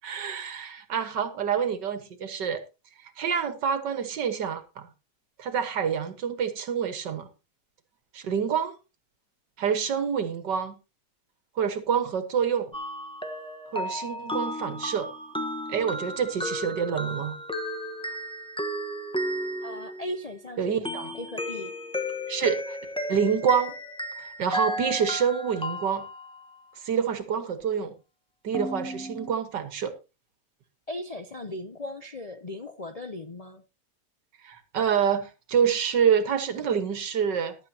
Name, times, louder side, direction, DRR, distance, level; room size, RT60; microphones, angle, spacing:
voice 1, 0.0-2.6 3.2-4.9 5.4-7.3 8.1-8.7 9.6-10.8 11.6-12.7 13.7-15.1 15.7-17.4 20.6-21.1 22.3-22.8 23.1-23.7 24.2-26.1 26.8-27.9 28.4-29.9 34.4-37.6, right 7 dB, 85° right, 2.1 m, -27 dB
sound 1, 12.7-20.3 20.8-26.5 28.5-29.3, equal, 5° left, 0.8 m, -34 dB
voice 2, 19.6-21.7 30.9-33.6, left 1 dB, 45° left, 0.4 m, -38 dB
15.0 x 12.0 x 2.8 m
omnidirectional pair, 1.8 m